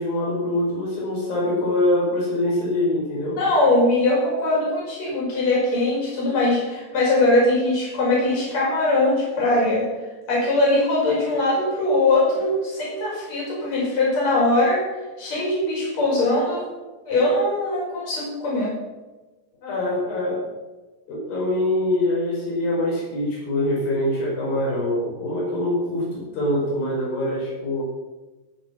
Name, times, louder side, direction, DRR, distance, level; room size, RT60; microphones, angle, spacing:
voice 1, 0.0-3.4 19.6-20.4 21.1-27.8, left 1 dB, 85° left, -4 dB, 6.6 m, -24 dB
voice 2, 3.4-9.9 10.3-14.9 15.2-16.7 17.0-18.7, left 2 dB, 50° left, -5 dB, 6.8 m, -21 dB
17.0 x 7.6 x 7.3 m, 1.2 s
omnidirectional pair, 4.0 m